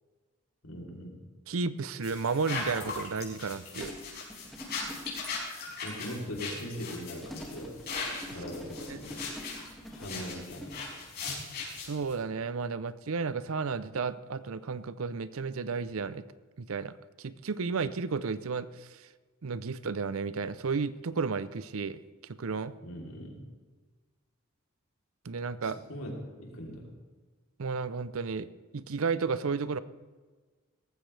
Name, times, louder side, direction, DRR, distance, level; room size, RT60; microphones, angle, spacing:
voice 1, 0.6-1.2 5.8-7.8 8.3-9.2 9.9-10.8 22.8-23.4 25.6-26.9, equal, 70° left, -1 dB, 3.3 m, -40 dB
voice 2, 1.5-3.9 8.9-9.0 11.8-16.2 16.6-19.1 19.4-22.0 22.4-22.7 25.2-25.8 27.6-28.5 28.7-29.8, right 4 dB, 70° right, 15 dB, 0.6 m, -33 dB
sound 1, 2.0-12.1, left 4 dB, 45° left, 5.3 m, -39 dB
sound 2, 3.8-5.4 7.2-10.8, equal, ahead, 2.0 m, -45 dB
18.0 x 14.5 x 3.3 m, 1.4 s
head